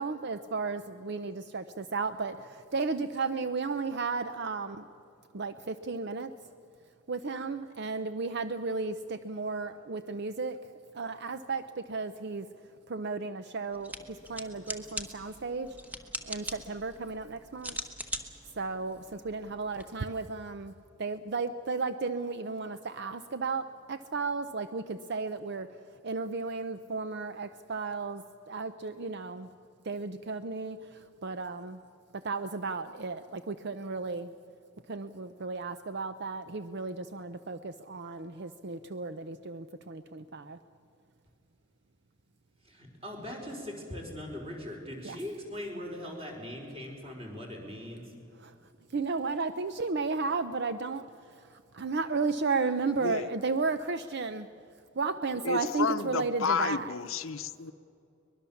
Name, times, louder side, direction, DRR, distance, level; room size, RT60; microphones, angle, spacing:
voice 1, 0.0-4.8 5.3-6.3 7.1-10.6 10.9-11.6 11.9-12.5 12.9-13.9 14.3-15.7 16.3-17.8 18.6-20.7 21.0-25.7 26.0-29.5 29.9-30.8 31.2-31.8 32.2-34.3 34.9-40.6 45.0-45.2 48.4-48.5 48.9-51.0 51.7-54.5 55.0-57.0, right 4 dB, 55° right, 11 dB, 0.6 m, -34 dB
sound 1, 13.7-19.8, equal, 10° right, 1.3 m, -42 dB
voice 2, 42.6-48.0, left 1 dB, 30° right, 0 dB, 4.6 m, -40 dB
voice 3, 55.4-57.7, left 5 dB, 80° left, 11 dB, 0.8 m, -31 dB
23.5 x 21.0 x 7.1 m, 2.5 s
head